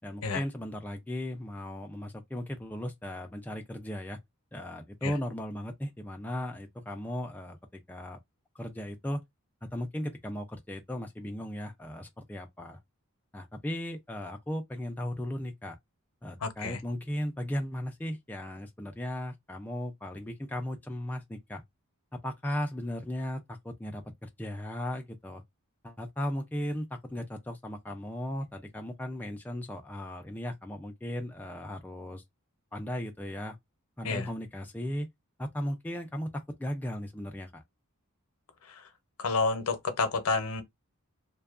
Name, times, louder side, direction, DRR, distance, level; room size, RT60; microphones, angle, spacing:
voice 1, 0.0-4.2 4.5-8.2 8.6-9.2 9.7-12.8 13.3-15.8 16.2-21.6 22.1-25.4 25.8-32.2 32.7-33.6 34.0-35.1 35.4-37.6, equal, 10° left, 0.3 m, -36 dB
voice 2, 16.4-16.8 34.0-34.3 38.8-38.9 39.2-40.6, left 4 dB, 75° left, 0.7 m, -29 dB
2.6 x 2.2 x 2.4 m
head